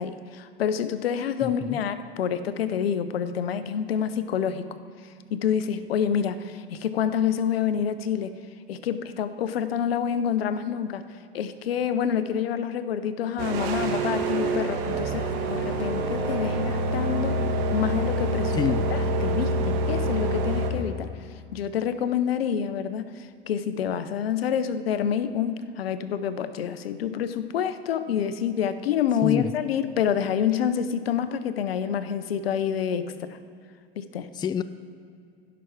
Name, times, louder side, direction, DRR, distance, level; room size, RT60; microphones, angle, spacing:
voice 1, 0.0-4.6 5.3-8.3 8.7-11.0 11.3-17.4 17.7-18.5 18.9-21.1 21.5-33.4 34.0-34.3, left 8 dB, 85° left, 12 dB, 0.7 m, -27 dB
voice 2, 1.4-1.8 18.5-18.9 29.2-29.5 34.3-34.6, left 7 dB, 15° left, 13 dB, 0.4 m, -27 dB
sound 1, 13.4-20.7, right 1 dB, 60° right, 1.5 m, -26 dB
16.0 x 6.1 x 4.7 m, 2.4 s
hypercardioid pair, 90°, 29 cm